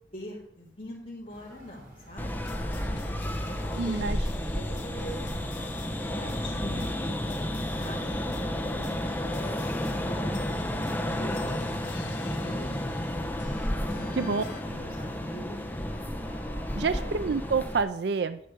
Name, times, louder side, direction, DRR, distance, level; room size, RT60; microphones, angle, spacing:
voice 1, 0.1-2.5 3.5-5.3 6.1-8.0 8.3-9.6 9.9-10.7 11.1-12.8 13.6-14.3 14.6-15.7 16.8-17.0, equal, 30° left, -7 dB, 3.7 m, -43 dB
sound 1, 1.3-17.5, right 1 dB, 50° right, 3.6 m, -51 dB
sound 2, 2.2-17.8, left 1 dB, 10° left, 1.0 m, -32 dB
sound 3, 2.4-14.6, left 3 dB, 85° left, 0.9 m, -45 dB
voice 2, 3.7-4.2 14.2-14.4 16.8-18.4, right 4 dB, 70° right, 12 dB, 0.5 m, -28 dB
11.5 x 5.2 x 8.3 m, 0.71 s
head